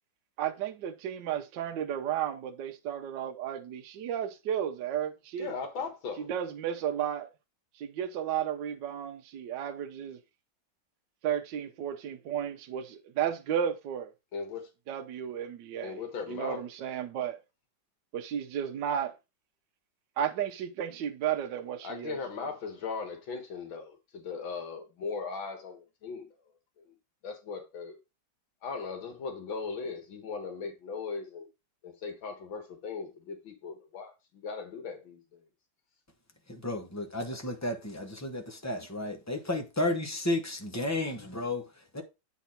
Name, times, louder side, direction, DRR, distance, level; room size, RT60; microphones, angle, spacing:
voice 1, 0.4-5.5 6.3-7.3 7.8-10.2 11.2-14.1 14.9-16.0 16.3-17.4 18.1-19.1 20.2-22.5, right 9 dB, 70° right, 1.3 m, -33 dB
voice 2, 5.4-6.3 14.3-14.7 15.8-16.6 21.8-26.3 26.8-27.0 27.2-28.0 28.6-31.5 31.8-35.4, left 5 dB, 85° left, 2.2 m, -38 dB
voice 3, 36.5-42.0, left 1 dB, 15° left, 0.7 m, -33 dB
8.4 x 4.0 x 4.3 m
omnidirectional pair, 2.1 m